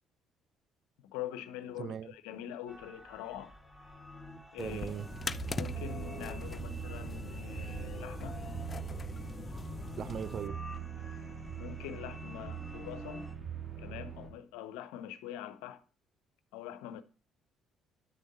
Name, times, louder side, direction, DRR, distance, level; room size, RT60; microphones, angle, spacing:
voice 1, 1.0-3.5 4.5-4.9 5.5-8.4 11.6-13.3 13.8-15.8 16.5-17.0, left 11 dB, 80° left, 0.8 m, -44 dB
voice 2, 1.8-2.1 4.6-5.1 10.0-10.6, right 8 dB, 55° right, 0.5 m, -38 dB
sound 1, 2.7-13.3, equal, 5° right, 2.1 m, -51 dB
sound 2, 4.6-10.5, left 4 dB, 35° left, 0.5 m, -42 dB
sound 3, 5.0-14.3, right 8 dB, 35° right, 2.9 m, -42 dB
9.3 x 6.4 x 4.1 m
hypercardioid pair, 55°, 0 cm